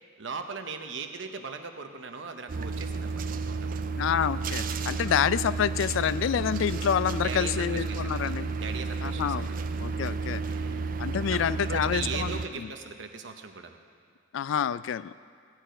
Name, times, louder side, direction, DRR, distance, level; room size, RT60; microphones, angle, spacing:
voice 1, 0.2-3.9 7.2-9.6 10.5-10.9 11.3-13.8, right 5 dB, 70° right, 6 dB, 0.9 m, -39 dB
sound 1, 2.5-12.5, right 4 dB, 45° right, 0.4 m, -32 dB
voice 2, 4.0-8.5 9.0-9.5 9.8-10.4 11.0-12.7 14.3-15.1, left 8 dB, 80° left, 16 dB, 0.3 m, -28 dB
16.0 x 9.2 x 5.1 m, 2.1 s
head